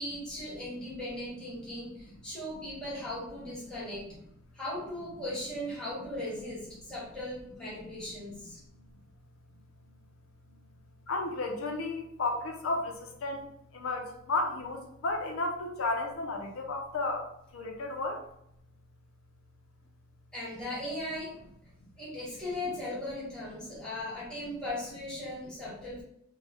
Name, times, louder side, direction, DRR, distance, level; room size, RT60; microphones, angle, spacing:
voice 1, 0.0-4.1 4.5-8.6 20.3-21.4 22.0-26.0, left 1 dB, 5° left, -8 dB, 1.2 m, -38 dB
voice 2, 11.1-18.2, left 2 dB, 85° left, 3 dB, 0.5 m, -33 dB
3.0 x 2.1 x 3.3 m, 0.74 s
head